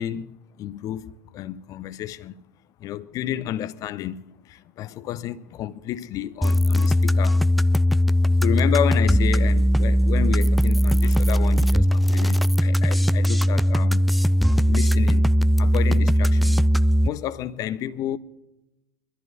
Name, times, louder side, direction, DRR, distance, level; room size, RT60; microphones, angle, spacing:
voice 1, 0.0-2.4 2.8-7.4 8.4-14.1 14.5-15.3 15.6-16.6 17.0-18.2, left 11 dB, 40° left, 0.7 m, -31 dB
sound 1, 6.4-17.1, equal, ahead, 0.4 m, -19 dB
25.0 x 14.0 x 2.7 m
figure-of-eight pair, 80°, 9 cm